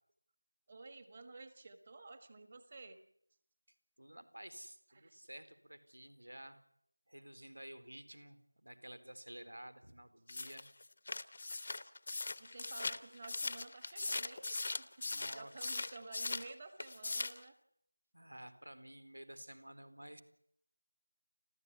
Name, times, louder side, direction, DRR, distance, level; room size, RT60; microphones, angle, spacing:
voice 1, 0.7-3.0 4.9-5.2 12.4-17.5, right 3 dB, 20° right, 9 dB, 1.5 m, -53 dB
voice 2, 4.0-6.6 7.1-10.7 15.0-15.5 18.1-20.2, right 1 dB, 80° right, 11 dB, 4.0 m, -52 dB
sound 1, 10.3-16.5 16.8-17.4, left 3 dB, 25° left, 0.9 m, -40 dB
29.0 x 13.5 x 9.7 m, 0.71 s
figure-of-eight pair, 175°, 0 cm